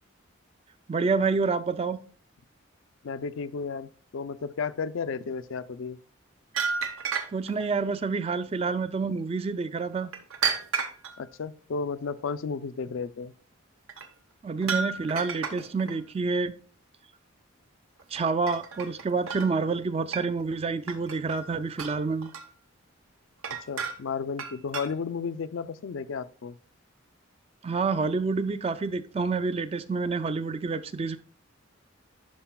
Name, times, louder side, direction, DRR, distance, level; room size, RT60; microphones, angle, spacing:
voice 1, 0.9-2.0 7.3-10.1 14.4-16.6 18.1-22.3 27.6-31.2, right 4 dB, 30° right, 0.3 m, -28 dB
voice 2, 3.0-6.0 11.2-13.3 23.7-26.6, left 5 dB, 70° left, 0.4 m, -33 dB
sound 1, 6.5-7.7 10.1-11.2 13.9-14.1 14.6-15.9 18.0-18.2 18.5-19.5 20.1-20.5 20.9-21.5 21.8-22.5 23.4-24.1 24.4-24.9, right 6 dB, 85° right, 0.9 m, -32 dB
11.5 x 4.7 x 2.2 m
head